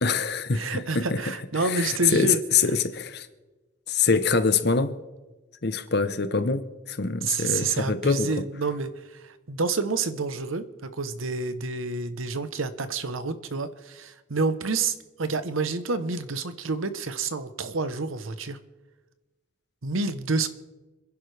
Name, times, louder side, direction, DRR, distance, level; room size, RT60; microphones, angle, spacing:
voice 1, 0.0-1.2 1.6-3.3 3.9-4.9 5.6-6.6 6.9-8.4, left 5 dB, 55° left, 11 dB, 0.9 m, -24 dB
voice 2, 0.5-2.4 7.2-10.6 11.0-18.6 19.8-20.5, right 4 dB, 90° right, 12 dB, 1.0 m, -29 dB
27.0 x 11.0 x 3.4 m, 1.2 s
head